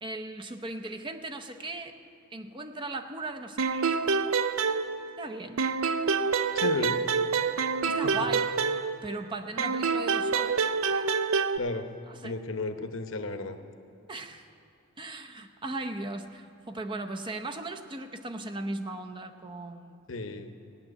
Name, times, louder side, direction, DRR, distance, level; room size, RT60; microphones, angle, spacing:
voice 1, 0.0-1.9 2.3-4.0 4.3-4.4 5.2-5.6 6.6-6.9 7.9-8.5 9.0-11.1 12.1-12.4 14.1-14.5 15.0-20.0, right 2 dB, 20° right, 5 dB, 0.6 m, -38 dB
sound 1, 3.6-5.3 5.6-9.2 9.6-11.6, right 5 dB, 65° right, 0.5 m, -27 dB
voice 2, 6.5-7.0 8.0-8.3 11.6-11.9 12.2-13.6 20.1-20.5, left 3 dB, 60° left, 7 dB, 0.9 m, -33 dB
16.5 x 7.4 x 9.8 m, 2.9 s
head